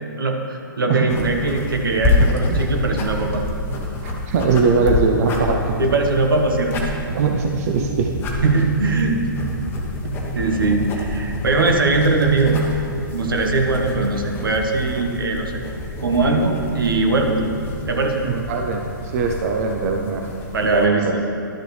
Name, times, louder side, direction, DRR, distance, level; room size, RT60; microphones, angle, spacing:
voice 1, 0.2-3.4 5.8-6.8 8.4-9.2 10.3-12.6 13.1-15.5 16.0-17.4 17.9-18.2 20.5-21.2, right 3 dB, 80° right, 3 dB, 1.2 m, -20 dB
sound 1, 1.1-20.9, left 2 dB, 20° left, 1.1 m, -27 dB
voice 2, 2.2-2.6 4.0-5.8 7.1-8.1 18.2-20.3 20.6-21.2, right 5 dB, 45° right, 2 dB, 0.6 m, -21 dB
11.5 x 6.4 x 3.2 m, 2.8 s
hypercardioid pair, 135°, 11 cm